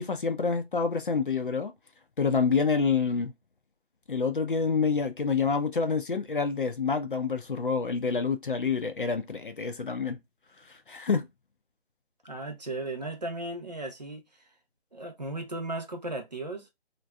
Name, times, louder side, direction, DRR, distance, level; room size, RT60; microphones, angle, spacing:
voice 1, 0.0-1.7 2.2-3.3 4.1-10.2 10.9-11.3, left 5 dB, 50° left, 0.5 m, -27 dB
voice 2, 12.2-14.2 14.9-16.7, right 2 dB, 40° right, 0.6 m, -36 dB
2.6 x 2.2 x 2.2 m
hypercardioid pair, 175°, 33 cm